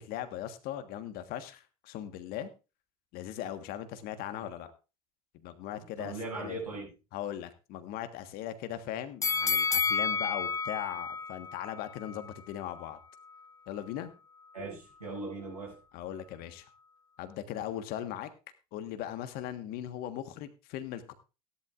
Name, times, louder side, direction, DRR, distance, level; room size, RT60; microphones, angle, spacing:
voice 1, 0.1-2.5 3.1-4.7 5.4-6.6 7.1-13.0 13.7-14.1 15.9-16.6 17.2-18.3 18.7-21.1, left 11 dB, 55° left, 1.5 m, -39 dB
voice 2, 5.7-6.9 14.5-15.8, right 2 dB, 90° right, 7.3 m, -39 dB
sound 1, 9.2-12.3 12.7-12.8, left 5 dB, 15° left, 0.6 m, -30 dB
16.5 x 11.5 x 2.5 m
figure-of-eight pair, 70°, 19 cm